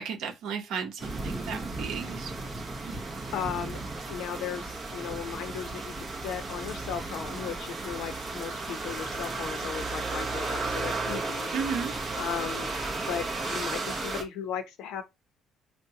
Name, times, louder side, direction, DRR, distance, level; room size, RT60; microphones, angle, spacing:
voice 1, 0.0-2.3 2.8-2.9 11.5-11.9, right 6 dB, 65° right, 0.8 m, -34 dB
sound 1, 1.0-14.2, right 3 dB, 25° right, 0.9 m, -34 dB
voice 2, 3.3-3.8 4.1-11.5 12.1-12.7 13.1-15.0, left 8 dB, 85° left, 0.7 m, -36 dB
4.4 x 2.2 x 2.8 m
cardioid pair, 175°, 0 cm